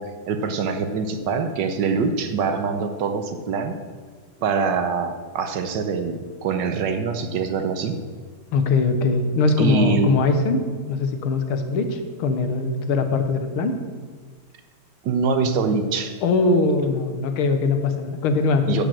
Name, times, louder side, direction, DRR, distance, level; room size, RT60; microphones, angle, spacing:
voice 1, 0.0-3.8 4.4-8.0 9.6-10.1 15.0-16.2 18.7-18.9, right 5 dB, 65° right, 7 dB, 1.3 m, -24 dB
voice 2, 8.5-13.8 16.2-18.9, left 3 dB, 85° left, 7 dB, 1.8 m, -21 dB
11.0 x 5.3 x 7.6 m, 1.5 s
omnidirectional pair, 2.3 m